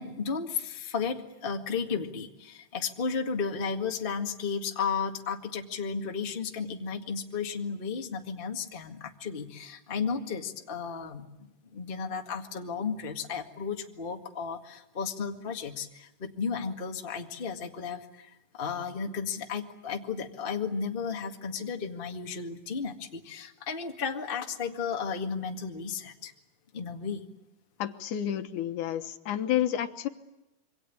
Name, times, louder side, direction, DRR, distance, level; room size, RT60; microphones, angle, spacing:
voice 1, 0.0-11.3 11.7-26.3 26.7-27.2, left 5 dB, 20° left, 4 dB, 1.5 m, -34 dB
voice 2, 27.8-30.1, left 11 dB, 75° left, 9 dB, 2.6 m, -30 dB
27.0 x 24.5 x 8.6 m, 0.93 s
omnidirectional pair, 3.7 m